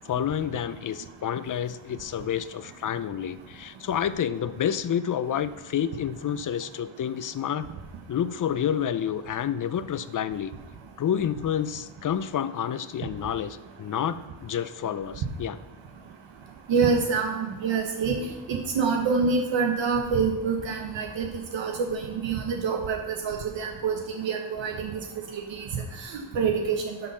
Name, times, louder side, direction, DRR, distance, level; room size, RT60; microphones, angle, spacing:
voice 1, 0.0-7.7 8.1-10.5 11.0-15.6, left 9 dB, 45° left, 14 dB, 0.6 m, -29 dB
voice 2, 16.7-18.2 18.5-21.3 21.5-24.9 25.3-27.0, right 5 dB, 70° right, 2 dB, 1.1 m, -26 dB
12.0 x 4.0 x 5.5 m, 1.1 s
cardioid pair, 80°, 46 cm